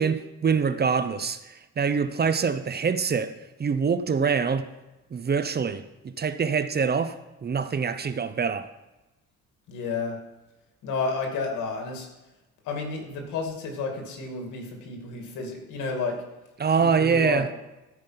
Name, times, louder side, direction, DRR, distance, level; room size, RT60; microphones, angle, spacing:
voice 1, 0.0-3.3 3.6-4.7 5.1-7.2 7.4-8.7 16.6-17.5, right 6 dB, 35° right, 0.7 m, -25 dB
voice 2, 9.7-10.2 10.8-12.1 12.6-16.2 16.8-17.5, left 4 dB, 90° left, 2.4 m, -31 dB
14.5 x 5.2 x 5.8 m
cardioid pair, 90°, 30 cm